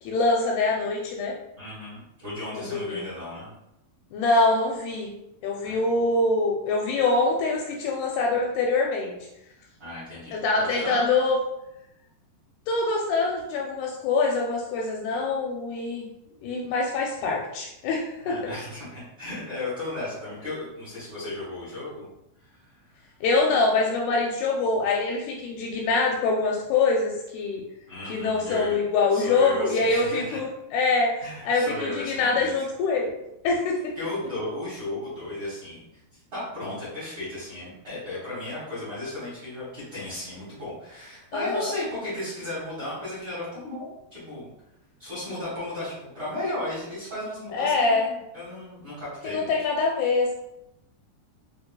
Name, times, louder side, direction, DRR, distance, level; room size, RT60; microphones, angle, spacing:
voice 1, 0.0-1.3 2.5-3.0 4.1-5.1 5.4-9.2 10.3-11.4 12.7-16.1 16.4-18.5 23.2-27.6 28.1-33.1 33.4-33.9 41.3-41.7 47.5-48.1 49.2-50.3, left 3 dB, 85° left, -1 dB, 2.3 m, -24 dB
voice 2, 1.6-3.5 5.6-6.0 9.8-11.1 18.2-22.1 22.4-22.8 27.9-28.7 29.1-30.4 31.2-32.5 33.9-35.8 36.1-44.5 45.0-49.5, left 1 dB, 70° right, -11 dB, 1.1 m, -35 dB
6.5 x 2.3 x 2.2 m, 0.86 s
omnidirectional pair, 4.9 m